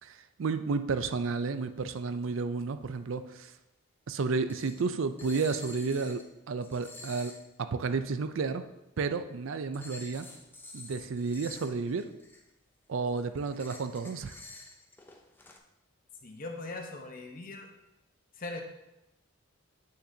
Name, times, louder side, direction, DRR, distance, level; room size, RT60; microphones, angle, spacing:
voice 1, 0.0-3.5 4.1-6.2 6.5-7.3 7.6-8.6 9.0-10.3 10.7-12.1 12.9-14.4, right 4 dB, 70° right, 10 dB, 0.4 m, -32 dB
sound 1, 3.5-3.6 4.5-4.9 5.2-6.3 6.6-7.4 9.7-12.5 13.0-15.6, left 2 dB, 10° left, 0.5 m, -49 dB
voice 2, 16.2-17.7 18.4-18.6, left 2 dB, 40° left, 3 dB, 0.9 m, -40 dB
8.6 x 6.6 x 2.7 m, 0.92 s
head